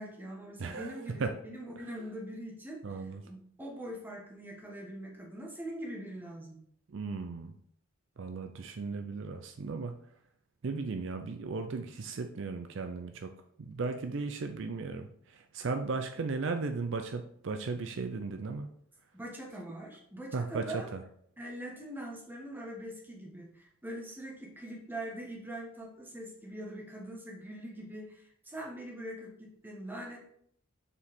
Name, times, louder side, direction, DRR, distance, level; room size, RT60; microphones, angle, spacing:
voice 1, 0.0-6.6 19.1-20.9 21.4-30.2, right 1 dB, 10° right, -2 dB, 1.3 m, -43 dB
voice 2, 0.6-1.4 2.8-3.2 6.9-7.6 8.2-10.0 10.6-18.7 20.3-21.0, right 4 dB, 60° right, 7 dB, 0.5 m, -36 dB
6.8 x 4.8 x 3.6 m, 0.66 s
head